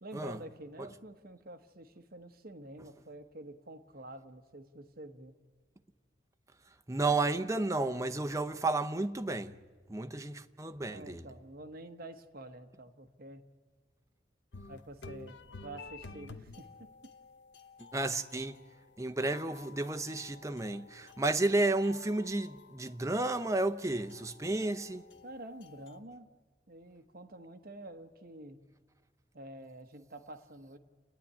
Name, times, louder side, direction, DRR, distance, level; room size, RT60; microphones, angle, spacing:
voice 1, 0.0-5.4 10.9-13.4 14.6-17.1 25.2-26.3 26.7-28.6 29.3-30.8, right 1 dB, 55° right, 1.1 m, -48 dB
voice 2, 6.9-9.5 9.9-11.3 17.8-18.6 19.0-25.0, right 2 dB, 15° right, 0.7 m, -32 dB
sound 1, 14.5-26.0, left 4 dB, 75° left, 0.9 m, -52 dB
30.0 x 10.0 x 9.5 m
head